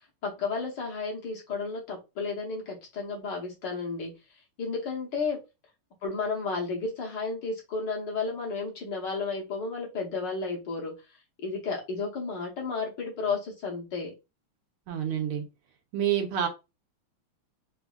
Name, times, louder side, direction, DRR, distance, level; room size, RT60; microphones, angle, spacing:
voice 1, 0.2-4.2 4.6-5.4 6.0-11.0 11.4-14.1, left 4 dB, 60° left, -1 dB, 1.5 m, -32 dB
voice 2, 14.9-15.4 15.9-16.5, right 9 dB, 80° right, 3 dB, 1.6 m, -27 dB
4.2 x 2.6 x 2.3 m, 0.26 s
omnidirectional pair, 2.4 m